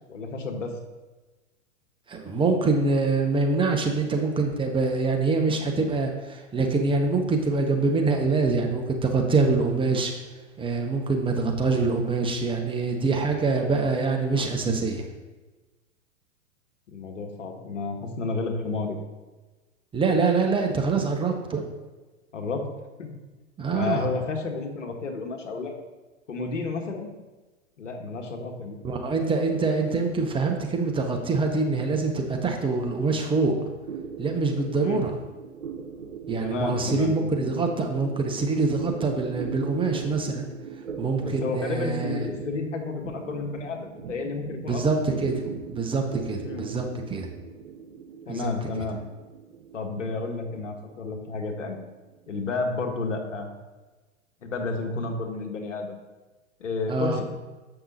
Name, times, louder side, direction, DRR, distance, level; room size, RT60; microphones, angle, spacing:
voice 1, 0.1-0.7 16.9-19.0 22.3-22.7 23.0-23.1 23.7-25.7 26.3-27.1 27.8-28.8 34.8-35.0 36.4-37.1 41.2-44.8 46.4-46.6 48.3-49.0 49.7-51.8 52.3-53.5 54.4-56.0 56.6-57.2, left 3 dB, 75° left, 3 dB, 1.5 m, -31 dB
voice 2, 2.1-10.1 10.6-15.0 19.9-21.6 23.6-24.1 28.8-33.5 34.2-35.1 36.3-40.4 41.0-42.2 44.7-47.3 48.3-48.5 56.9-57.2, right 3 dB, 15° right, 2 dB, 0.9 m, -25 dB
sound 1, 33.8-52.6, right 6 dB, 85° right, 0.9 m, -40 dB
7.7 x 5.8 x 4.1 m, 1.2 s
figure-of-eight pair, 100°, 37 cm